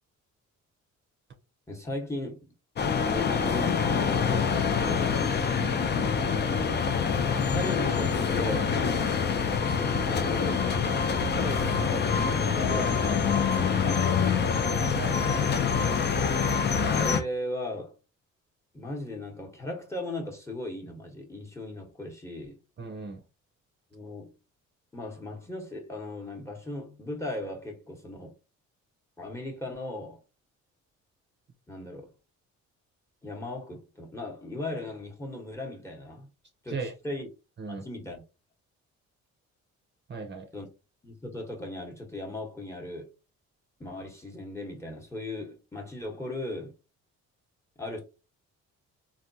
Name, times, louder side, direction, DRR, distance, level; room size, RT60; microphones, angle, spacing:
voice 1, 1.7-2.4 3.1-5.3 7.3-8.7 9.4-11.8 12.3-14.5 16.8-17.9 18.7-22.6 23.9-24.3 24.9-28.3 29.2-30.2 31.7-32.1 33.2-36.3 36.6-37.3 37.6-38.2 40.5-40.7 41.0-43.1 43.8-46.7 47.8-48.0, left 1 dB, 10° left, 1.0 m, -37 dB
sound 1, 2.8-17.2, left 6 dB, 35° left, 0.5 m, -26 dB
voice 2, 14.9-15.4 22.8-23.2 36.7-36.9 37.6-37.8 40.1-40.5, right 4 dB, 35° right, 0.6 m, -37 dB
3.4 x 2.3 x 2.6 m
cardioid pair, 90°, 30 cm